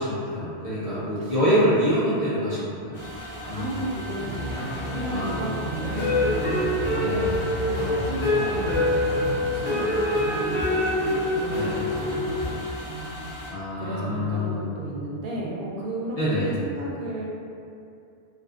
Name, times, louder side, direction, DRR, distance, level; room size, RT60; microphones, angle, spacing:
voice 1, 0.0-3.0 3.4-3.9 5.1-5.3 7.0-7.3 11.5-11.8 13.5-14.7 16.2-16.6, equal, 50° left, -12 dB, 0.5 m, -26 dB
voice 2, 1.2-2.1 3.5-10.6 10.9-12.6 12.9-13.2 13.8-17.3, right 1 dB, 60° right, -4 dB, 0.6 m, -34 dB
sound 1, 2.9-13.5, equal, 65° left, 0.9 m, -38 dB
sound 2, 4.3-10.6, left 1 dB, 90° left, 0.8 m, -33 dB
sound 3, 5.9-12.5, left 1 dB, 30° left, 0.9 m, -25 dB
2.5 x 2.4 x 2.4 m, 2.5 s
omnidirectional pair, 1.1 m